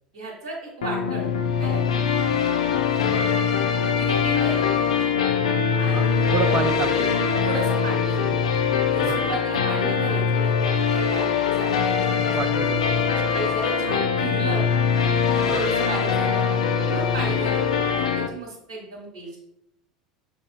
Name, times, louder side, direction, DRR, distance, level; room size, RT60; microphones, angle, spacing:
voice 1, 0.1-1.3 1.6-2.1 3.8-5.1 5.8-6.7 7.4-8.3 8.9-12.3 13.3-14.7 15.3-16.4 16.9-19.3, right 3 dB, 70° right, -5 dB, 0.9 m, -34 dB
sound 1, 0.8-18.3, left 6 dB, 70° left, 0.4 m, -22 dB
voice 2, 5.9-7.2 9.0-9.3 12.3-13.1 15.5-15.7 17.3-17.4, right 7 dB, 35° right, 10 dB, 0.4 m, -30 dB
5.8 x 2.8 x 2.2 m, 0.83 s
figure-of-eight pair, 75°, 4 cm